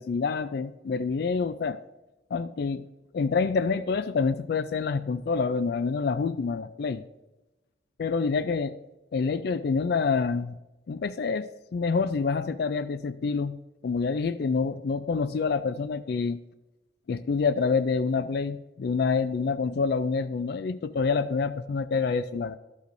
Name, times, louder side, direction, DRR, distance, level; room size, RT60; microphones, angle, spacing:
voice 1, 0.0-1.8 2.3-2.8 3.1-7.0 8.0-8.8 9.1-10.6 10.9-13.6 13.8-16.4 17.1-22.6, left 5 dB, 60° left, 12 dB, 0.3 m, -27 dB
12.0 x 8.2 x 2.6 m, 1.0 s
head